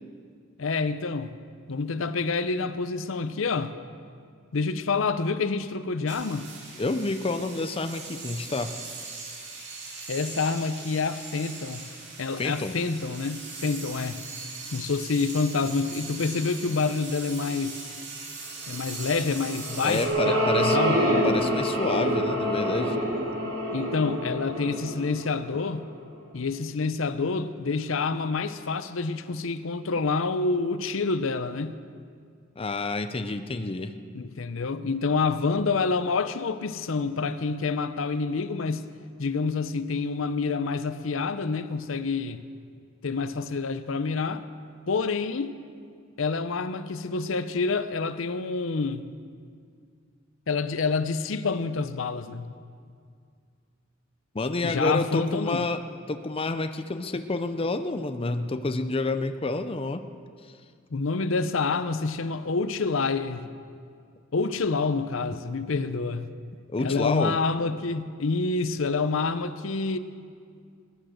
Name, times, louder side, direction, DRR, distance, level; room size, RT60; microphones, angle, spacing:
voice 1, 0.6-1.4 1.7-3.8 4.5-6.5 10.1-11.9 12.2-14.3 14.7-17.9 18.7-21.0 23.7-25.8 26.3-31.7 34.1-38.8 39.2-42.4 43.0-44.4 44.9-45.6 46.2-49.1 50.5-52.5 54.6-55.7 60.9-63.5 64.3-66.3 66.8-70.0, left 4 dB, 70° left, 12 dB, 0.7 m, -27 dB
sound 1, 6.1-20.1, right 4 dB, 60° right, 2.7 m, -40 dB
voice 2, 6.8-8.7 12.4-12.7 19.8-20.8 21.2-23.0 32.6-33.9 54.3-55.8 56.1-60.1 66.7-67.4, left 3 dB, 25° left, 8 dB, 0.6 m, -29 dB
sound 2, 19.3-25.9, equal, 85° right, 3.6 m, -26 dB
20.5 x 10.0 x 6.5 m, 2.2 s
head